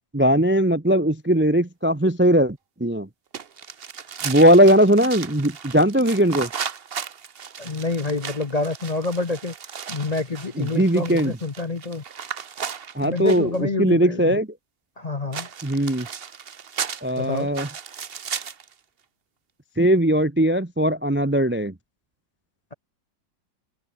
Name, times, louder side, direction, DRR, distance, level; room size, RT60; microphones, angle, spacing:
voice 1, 0.1-3.1 4.2-6.5 10.6-11.4 12.9-14.5 15.6-16.1 17.0-17.7 19.8-21.7, equal, 15° right, 0.3 m, -19 dB
sound 1, 3.3-13.6 15.3-18.7, right 7 dB, 40° right, 0.9 m, -35 dB
voice 2, 7.6-9.5 9.9-12.0 13.0-14.4 15.0-15.5 17.2-17.5, left 3 dB, 30° left, 0.7 m, -27 dB
omnidirectional pair, 2.0 m